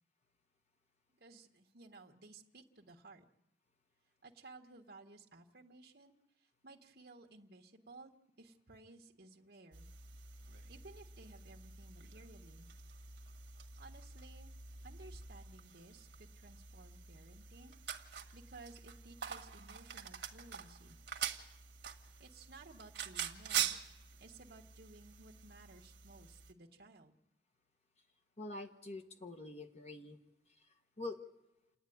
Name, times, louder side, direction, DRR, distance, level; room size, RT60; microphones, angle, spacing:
voice 1, 1.1-3.2 4.2-9.9 10.7-12.7 13.8-14.5 14.8-17.8 18.1-21.0 22.2-23.7 24.2-27.1, right 3 dB, 60° right, 0 dB, 1.6 m, -57 dB
sound 1, 9.7-26.5, right 8 dB, 80° right, 1.5 m, -45 dB
voice 2, 28.4-30.2 30.6-30.7 31.0-31.2, left 2 dB, 35° left, 5 dB, 1.2 m, -45 dB
29.5 x 9.9 x 9.4 m, 0.98 s
head